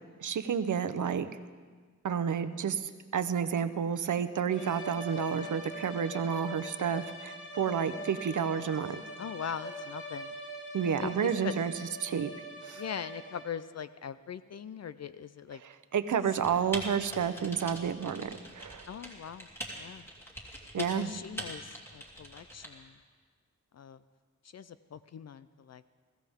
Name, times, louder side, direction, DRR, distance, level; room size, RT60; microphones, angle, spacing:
voice 1, 0.2-1.3 2.0-9.0 10.7-12.3 12.6-12.8 15.5-18.9 20.7-21.1, right 7 dB, 70° right, 11 dB, 0.8 m, -31 dB
sound 1, 4.5-13.7, equal, 40° left, 3.1 m, -43 dB
voice 2, 9.2-10.4 11.0-11.6 12.8-15.6 18.9-19.5 19.7-20.1 20.8-22.9 23.7-24.0 24.5-25.9, left 8 dB, 55° left, 14 dB, 0.5 m, -41 dB
Typing, 16.4-22.7, right 1 dB, 10° left, 2.8 m, -43 dB
22.0 x 15.5 x 3.6 m, 1.5 s
wide cardioid pair, 95°, 31 cm